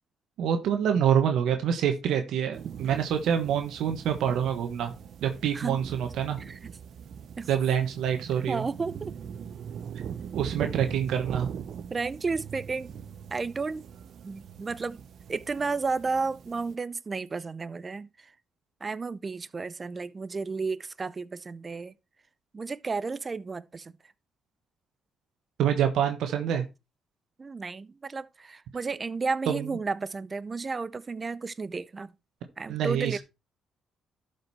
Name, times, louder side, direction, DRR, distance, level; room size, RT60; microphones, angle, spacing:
voice 1, 0.4-4.9 5.2-6.4 7.5-8.6 10.3-11.5 25.6-26.6 29.5-29.7 32.7-33.2, right 8 dB, 80° right, 1.3 m, -26 dB
sound 1, 2.5-16.8, right 7 dB, 60° right, 0.8 m, -41 dB
voice 2, 8.5-9.1 11.9-12.9 13.3-13.9 14.2-15.0 15.3-18.1 18.8-21.9 22.5-23.9 27.4-32.1 32.6-33.2, right 4 dB, 30° right, 0.6 m, -32 dB
12.0 x 5.2 x 4.2 m
cardioid pair, 90°, 0 cm